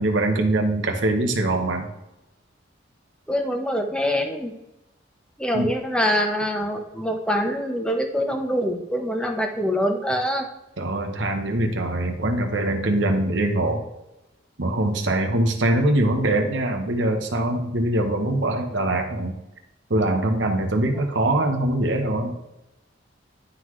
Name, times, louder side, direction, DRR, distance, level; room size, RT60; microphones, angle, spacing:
voice 1, 0.0-1.9 5.5-5.7 10.8-13.8 14.6-19.3 19.9-22.4, right 1 dB, 80° right, 3 dB, 1.0 m, -23 dB
voice 2, 3.3-4.5 5.4-10.5 20.9-21.1, equal, 5° left, 3 dB, 0.8 m, -24 dB
11.0 x 3.9 x 3.2 m, 0.92 s
head